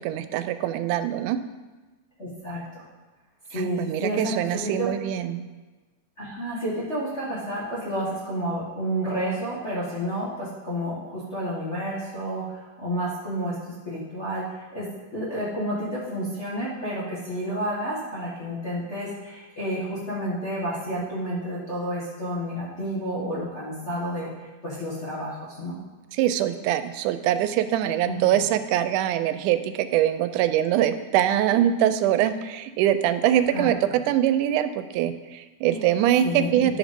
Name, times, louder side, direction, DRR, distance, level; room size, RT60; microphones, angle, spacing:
voice 1, 0.0-1.4 3.5-5.4 26.1-36.8, right 11 dB, 90° right, 11 dB, 2.1 m, -23 dB
voice 2, 2.2-2.8 3.5-4.9 6.2-25.8 28.0-28.2 33.5-33.7 35.7-35.8 36.2-36.7, equal, 30° left, -8 dB, 1.4 m, -30 dB
10.5 x 5.1 x 5.2 m, 1.2 s
omnidirectional pair, 3.5 m